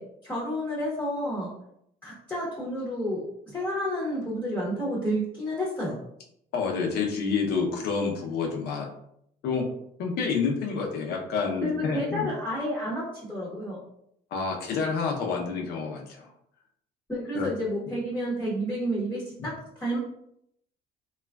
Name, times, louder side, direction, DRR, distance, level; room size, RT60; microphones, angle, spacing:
voice 1, 0.0-1.5 2.0-6.0 11.6-13.8 17.1-20.0, equal, 10° left, -5 dB, 0.8 m, -30 dB
voice 2, 6.5-8.9 9.4-9.7 10.0-12.3 14.3-16.3 17.3-17.5, left 5 dB, 75° left, 1 dB, 0.7 m, -28 dB
3.1 x 2.3 x 2.2 m, 0.73 s
cardioid pair, 110°, 17 cm